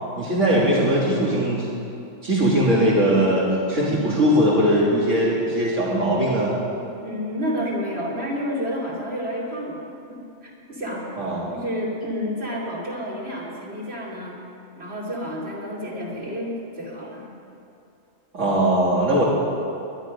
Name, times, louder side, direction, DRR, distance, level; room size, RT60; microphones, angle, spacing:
voice 1, 0.2-1.7 2.2-6.5 11.2-11.5 18.3-19.2, right 1 dB, 65° right, -7 dB, 2.4 m, -20 dB
voice 2, 7.0-9.8 10.1-11.1 11.5-14.4 14.8-17.3, equal, 50° right, -4 dB, 3.0 m, -30 dB
20.5 x 11.5 x 5.2 m, 2.7 s
omnidirectional pair, 1.4 m